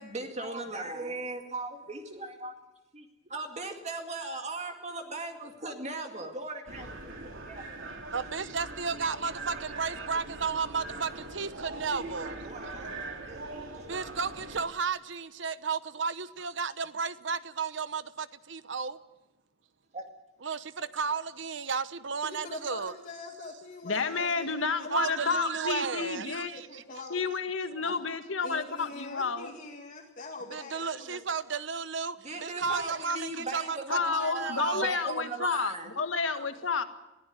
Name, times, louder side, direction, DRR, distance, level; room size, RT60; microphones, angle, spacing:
voice 1, 0.0-2.5 2.9-8.0 8.9-10.9 12.0-13.9 19.9-20.0 27.7-27.8 32.2-36.0 36.4-36.5, right 2 dB, 35° right, 2.1 m, -39 dB
sound 1, 6.7-14.7, right 2 dB, 90° right, 3.6 m, -41 dB
voice 2, 8.1-12.3 13.9-19.0 20.4-22.9 24.9-26.8 30.5-34.9, right 5 dB, 65° right, 0.9 m, -33 dB
voice 3, 22.2-25.4 26.0-27.2 27.8-27.9 28.4-31.3, left 3 dB, 45° left, 2.0 m, -44 dB
voice 4, 23.8-26.5 27.1-29.5 33.9-36.8, left 5 dB, 90° left, 1.8 m, -30 dB
22.0 x 15.5 x 9.4 m
head